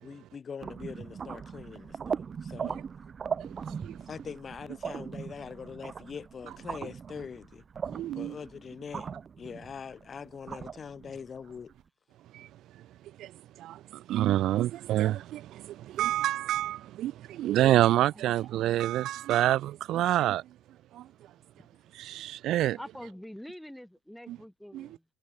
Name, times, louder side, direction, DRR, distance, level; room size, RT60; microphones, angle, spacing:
voice 1, 0.0-2.8 4.0-7.6 8.1-9.1 9.4-11.7, left 6 dB, 30° left, 2.5 m, -43 dB
sound 1, 0.6-11.7, right 6 dB, 30° right, 1.1 m, -39 dB
voice 2, 7.9-8.3 12.3-12.5 13.2-13.3 13.6-20.4 20.9-21.0 22.0-22.8 24.7-24.8, right 13 dB, 55° right, 0.7 m, -27 dB
voice 3, 18.1-18.5 21.2-21.3 21.5-21.7 22.8-25.1, equal, ahead, 6.3 m, -46 dB
cardioid pair, 130°, 0 cm